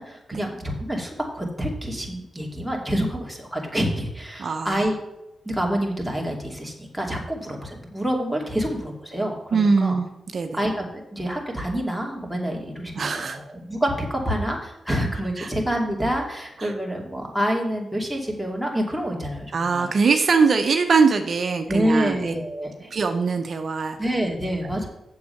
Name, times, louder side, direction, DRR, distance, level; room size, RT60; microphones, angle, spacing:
voice 1, 0.0-4.9 5.4-10.0 10.5-10.8 11.1-19.9 21.7-22.9 24.0-24.9, equal, ahead, -1 dB, 2.6 m, -27 dB
voice 2, 4.4-4.8 9.5-10.6 12.9-13.4 15.4-15.5 16.6-16.7 19.5-22.3 22.9-24.0, right 4 dB, 60° right, 5 dB, 0.8 m, -22 dB
7.6 x 7.3 x 5.7 m, 0.90 s
cardioid pair, 65°, 0 cm